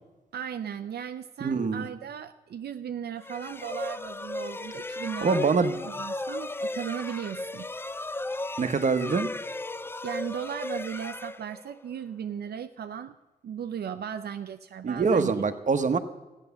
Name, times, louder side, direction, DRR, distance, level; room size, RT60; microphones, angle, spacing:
voice 1, 0.3-7.7 10.0-13.2 13.4-15.3, right 8 dB, 80° right, 9 dB, 0.5 m, -36 dB
voice 2, 1.4-1.9 5.2-5.9 8.6-9.3 14.8-16.0, right 4 dB, 50° right, 10 dB, 1.0 m, -24 dB
sound 1, 3.2-12.0, left 2 dB, 15° left, 0.4 m, -36 dB
14.5 x 10.0 x 6.9 m, 1.1 s
wide cardioid pair, 125°, 16 cm